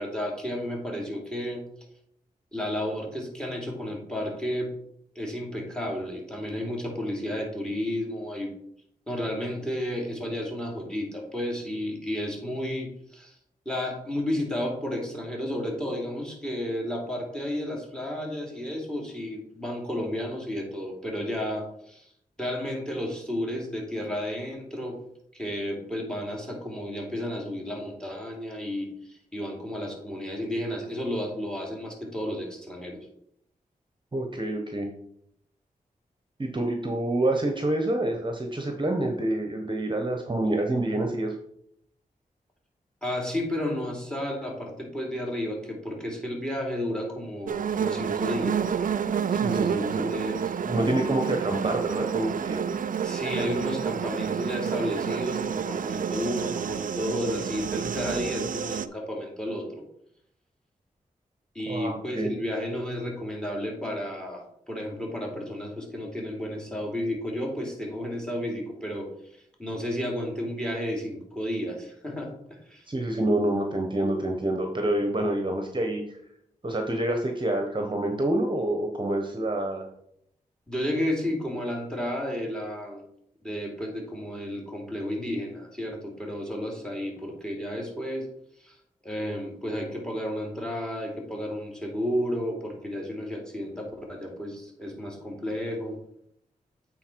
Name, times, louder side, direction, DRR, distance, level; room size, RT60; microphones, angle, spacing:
voice 1, 0.0-1.6 2.5-4.7 5.1-8.5 9.1-13.3 13.6-22.1 22.4-25.0 25.3-33.1 43.0-48.7 49.6-50.6 53.0-59.8 61.5-72.8 80.7-83.0 83.4-88.3 88.6-88.8 89.0-96.0, left 1 dB, 5° left, 0 dB, 2.9 m, -32 dB
voice 2, 34.1-34.9 36.4-41.4 49.3-50.1 50.6-52.6 61.7-62.3 72.9-76.2 76.6-79.9, right 1 dB, 30° right, 3 dB, 1.1 m, -27 dB
sound 1, 47.5-58.9, right 7 dB, 65° right, 0.4 m, -29 dB
8.7 x 4.2 x 4.6 m, 0.73 s
cardioid pair, 50°, 15 cm